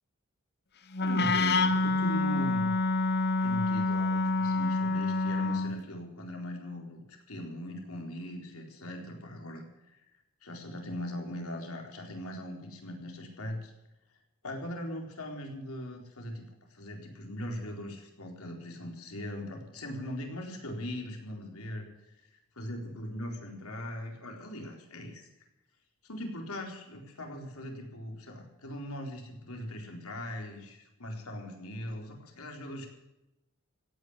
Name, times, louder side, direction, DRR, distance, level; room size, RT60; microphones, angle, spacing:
Wind instrument woodwind instrument, 0.9-5.8, left 3 dB, 50° left, 1.0 m, -27 dB
voice 1, 1.0-2.7 3.4-10.0 10.4-13.7 14.4-22.1 22.6-25.3 26.0-32.9, left 1 dB, 75° left, 2 dB, 4.1 m, -40 dB
16.5 x 9.7 x 8.1 m, 0.91 s
head